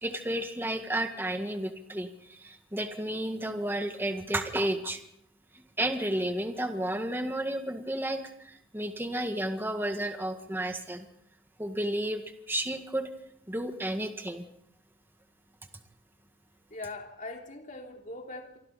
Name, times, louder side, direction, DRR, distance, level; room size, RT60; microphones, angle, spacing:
voice 1, 0.0-5.0 5.8-11.1 11.6-12.2 12.5-13.1 13.5-14.5, right 1 dB, 10° right, 6 dB, 1.8 m, -32 dB
voice 2, 16.7-18.6, left 2 dB, 45° left, 2 dB, 3.3 m, -41 dB
27.5 x 25.0 x 4.2 m, 0.74 s
head